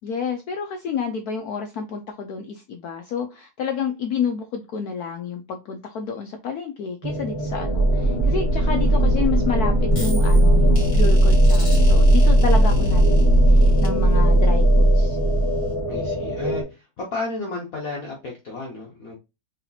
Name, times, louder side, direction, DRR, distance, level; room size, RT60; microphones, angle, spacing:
voice 1, 0.0-15.2, left 6 dB, 75° left, 5 dB, 0.8 m, -29 dB
sound 1, 7.0-16.6, equal, 15° right, 0.8 m, -29 dB
sound 2, 7.4-15.9, right 1 dB, 15° left, 2.1 m, -17 dB
voice 2, 8.8-9.3 15.9-19.1, left 3 dB, 55° left, -1 dB, 1.2 m, -33 dB
4.2 x 3.9 x 2.7 m, 0.26 s
omnidirectional pair, 2.2 m